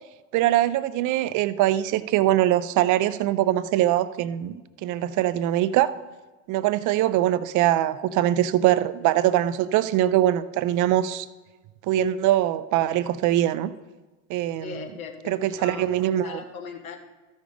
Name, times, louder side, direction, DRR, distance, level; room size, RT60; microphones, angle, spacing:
voice 1, 0.3-5.9 6.5-11.3 11.9-13.7 14.3-14.7 15.3-16.4, right 13 dB, 45° right, 14 dB, 0.6 m, -22 dB
voice 2, 14.6-15.9 16.2-17.0, left 6 dB, 80° left, 2 dB, 1.6 m, -38 dB
13.5 x 5.3 x 5.0 m, 1.2 s
hypercardioid pair, 80°, 42 cm